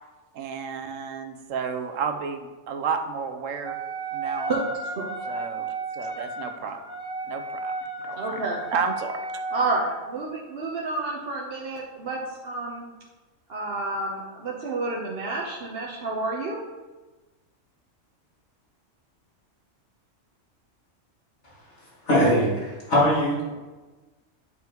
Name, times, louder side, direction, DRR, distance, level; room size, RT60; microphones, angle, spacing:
voice 1, 0.3-3.7 4.1-4.6 5.3-6.8 7.3-7.7 8.0-8.4 8.7-9.2, right 6 dB, 90° right, 6 dB, 1.1 m, -31 dB
Wind instrument woodwind instrument, 3.6-10.1, right 3 dB, 5° right, 0.4 m, -33 dB
voice 2, 8.2-8.7 9.5-12.9 13.5-16.6, right 3 dB, 55° right, -3 dB, 1.0 m, -30 dB
voice 3, 21.8-23.5, equal, 60° left, -8 dB, 2.7 m, -22 dB
9.5 x 5.6 x 3.0 m, 1.2 s
omnidirectional pair, 1.3 m